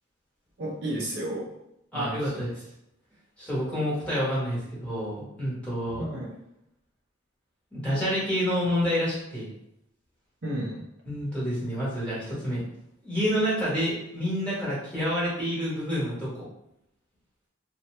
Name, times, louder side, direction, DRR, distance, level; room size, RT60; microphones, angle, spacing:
voice 1, 0.6-1.5 1.9-2.5 6.0-6.3 10.4-10.9, right 1 dB, 55° right, -3 dB, 0.6 m, -33 dB
voice 2, 1.9-2.5 3.4-6.0 7.7-9.5 11.1-12.6 13.0-16.4, equal, 5° left, -9 dB, 1.2 m, -28 dB
2.8 x 2.2 x 3.1 m, 0.82 s
head